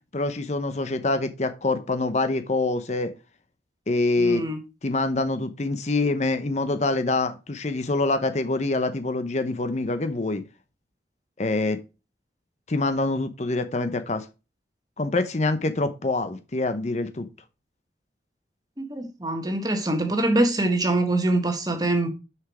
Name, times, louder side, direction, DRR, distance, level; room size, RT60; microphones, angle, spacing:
voice 1, 0.1-3.1 3.9-4.4 4.8-10.4 11.4-11.8 12.7-14.3 15.0-17.3, left 2 dB, 40° left, 0.7 m, -25 dB
voice 2, 4.2-4.6 18.8-22.1, right 2 dB, 20° right, 1.5 m, -24 dB
6.3 x 5.9 x 4.8 m
head